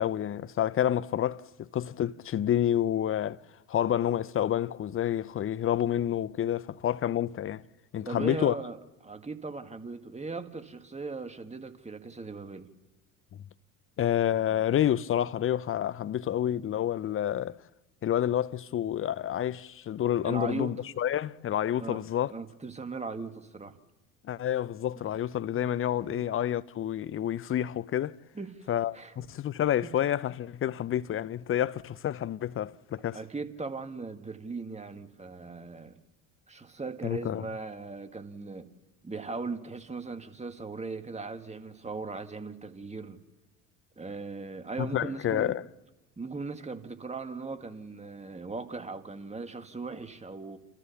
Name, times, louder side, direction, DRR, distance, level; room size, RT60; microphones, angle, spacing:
voice 1, 0.0-3.4 3.7-7.6 7.9-8.5 14.0-17.6 18.0-22.3 24.2-28.2 28.7-33.2 37.0-37.5 44.8-45.6, left 11 dB, 30° left, 0.6 m, -29 dB
voice 2, 8.1-12.7 20.2-20.7 21.8-22.0 22.3-23.7 25.5-25.7 26.1-26.2 28.3-28.7 28.9-29.1 29.8-29.9 33.1-36.0 36.5-38.7 39.0-43.2 44.0-45.6 46.2-50.6, right 3 dB, 15° right, 1.9 m, -38 dB
29.0 x 14.0 x 7.1 m
hypercardioid pair, 70°, 43 cm